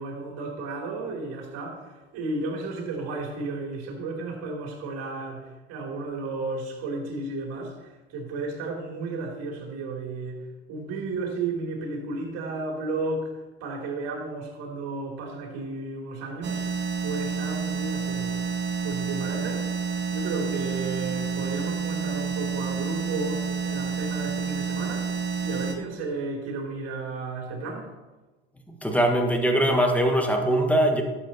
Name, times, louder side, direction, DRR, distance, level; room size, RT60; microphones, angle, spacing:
voice 1, 0.0-16.6 17.0-18.4 18.8-19.7 20.1-25.1 25.4-27.9, right 3 dB, 60° right, 1 dB, 3.3 m, -33 dB
sound 1, 16.4-25.8, right 5 dB, 40° right, 1.8 m, -29 dB
voice 2, 28.7-31.0, right 1 dB, 5° left, 3 dB, 1.8 m, -22 dB
11.5 x 7.5 x 4.3 m, 1.2 s
hypercardioid pair, 80°, 30 cm